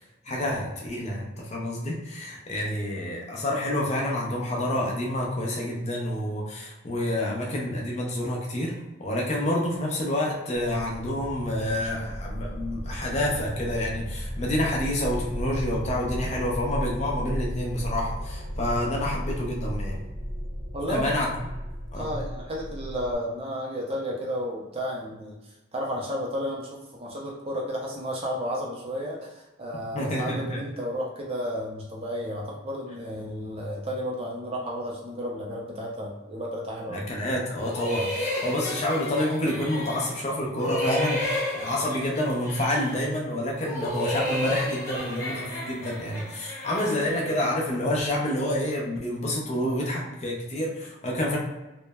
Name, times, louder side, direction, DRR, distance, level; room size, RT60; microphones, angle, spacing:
voice 1, 0.2-8.7 9.0-20.1 20.9-21.3 21.9-22.1 29.9-30.7 36.9-51.4, left 1 dB, 35° left, -3 dB, 0.5 m, -28 dB
sound 1, 10.5-23.2, equal, 85° left, 0.9 m, -34 dB
voice 2, 20.7-21.1 21.9-37.1, equal, 30° right, -2 dB, 0.4 m, -32 dB
sound 2, 37.6-40.2 40.5-43.1 43.5-47.3, left 1 dB, 15° left, 0.8 m, -32 dB
3.1 x 2.0 x 2.2 m, 1.0 s
head